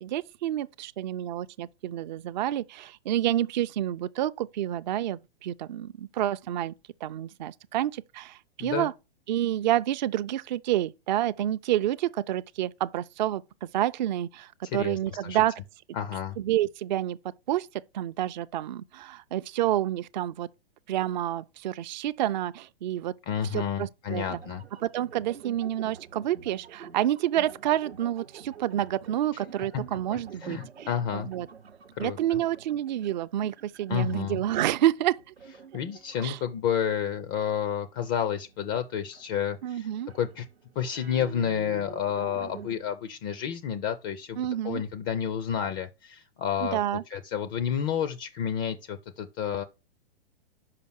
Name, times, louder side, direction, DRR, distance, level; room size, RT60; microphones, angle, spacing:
voice 1, 0.0-6.7 7.0-8.9 9.3-15.6 16.4-17.2 17.5-17.7 17.9-20.5 20.9-23.1 23.5-24.2 24.8-30.9 31.1-31.5 32.0-35.2 36.2-36.4 39.6-40.1 44.4-44.8 46.6-47.0, right 12 dB, 45° right, 0.4 m, -29 dB
voice 2, 14.6-15.4 15.9-16.4 23.3-24.6 29.7-29.8 30.4-31.3 32.0-32.4 33.9-34.4 35.7-39.9 40.1-40.5 40.8-46.8 47.1-49.6, left 8 dB, 20° left, 0.3 m, -30 dB
sound 1, 24.1-37.0 37.9-42.8, right 6 dB, 85° right, 0.7 m, -48 dB
5.7 x 5.2 x 6.2 m
figure-of-eight pair, 115°, 31 cm